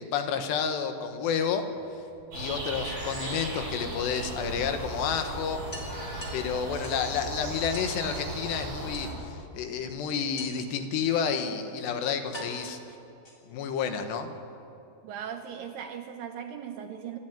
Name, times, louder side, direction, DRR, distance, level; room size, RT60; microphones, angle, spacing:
voice 1, 0.0-1.6 2.4-5.6 6.3-12.8 13.5-14.3, left 7 dB, 85° left, 7 dB, 3.5 m, -30 dB
sound 1, 1.7-2.7 4.2-4.3 4.7-4.8 5.1-5.2 5.7-7.1 7.7-8.0 8.9-9.5 10.4-10.8 11.6-11.7 12.3-13.7, equal, 20° left, 3.6 m, -45 dB
sound 2, 2.3-9.1, right 1 dB, 55° right, 9.3 m, -36 dB
voice 2, 15.0-17.2, right 8 dB, 75° right, 6 dB, 2.2 m, -38 dB
26.5 x 12.5 x 9.0 m, 2.7 s
omnidirectional pair, 4.8 m